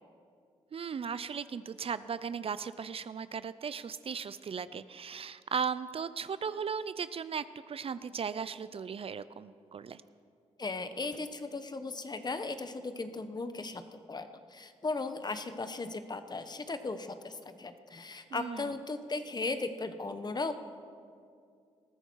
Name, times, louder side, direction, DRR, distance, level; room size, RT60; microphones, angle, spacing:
voice 1, 0.7-10.0 18.3-18.7, right 6 dB, 50° right, 15 dB, 0.5 m, -37 dB
voice 2, 10.6-20.5, left 3 dB, 35° left, 9 dB, 1.1 m, -37 dB
20.5 x 13.5 x 4.7 m, 2.3 s
cardioid pair, 60°, 12 cm